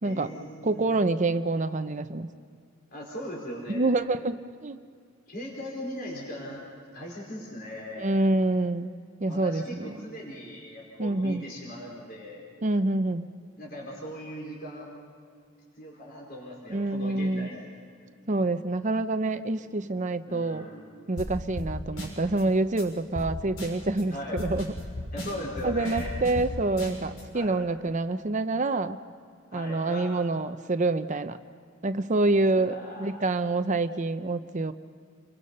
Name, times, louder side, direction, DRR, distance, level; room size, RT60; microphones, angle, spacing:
voice 1, 0.0-0.9 2.9-3.9 5.3-8.1 9.3-12.4 13.6-14.9 15.8-17.6 19.6-19.7 20.3-20.8 24.1-24.4 25.1-26.1 27.3-27.5 29.5-30.1 32.5-33.3, equal, 45° left, -3 dB, 4.9 m, -39 dB
voice 2, 0.6-2.3 3.7-4.8 8.0-8.9 9.2-9.9 11.0-11.4 12.6-13.3 16.7-17.5 18.3-20.7 21.1-24.7 25.6-29.0 29.5-31.4 31.8-34.7, right 2 dB, 35° right, 10 dB, 0.7 m, -27 dB
sound 1, 21.2-21.3 21.6-21.7 22.0-22.4 22.8-22.9 23.1-23.3 23.6-24.0 24.4-26.5 26.8-27.2, equal, 80° left, 6.5 m, -35 dB
29.5 x 23.0 x 5.5 m, 2.2 s
head